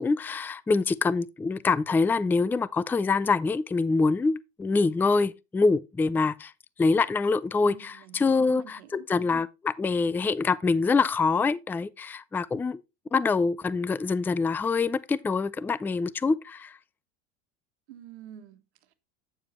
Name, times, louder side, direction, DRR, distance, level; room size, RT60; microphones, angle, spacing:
voice 1, 0.0-6.5 6.8-12.8 13.1-16.8, left 4 dB, 5° left, 0.3 m, -25 dB
voice 2, 7.6-9.1 17.9-18.9, right 10 dB, 80° right, 1.4 m, -48 dB
8.9 x 7.3 x 3.0 m
hypercardioid pair, 95°, 33 cm